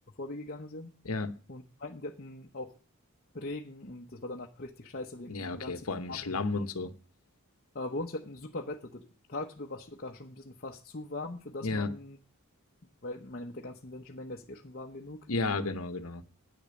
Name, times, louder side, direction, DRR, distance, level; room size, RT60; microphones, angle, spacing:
voice 1, 0.2-0.9 1.5-2.7 3.3-6.7 7.7-12.2 13.0-15.3, left 2 dB, 45° left, 0.9 m, -41 dB
voice 2, 5.3-6.9 11.6-11.9 15.3-16.2, left 3 dB, 80° left, 1.0 m, -32 dB
9.4 x 6.9 x 8.7 m
head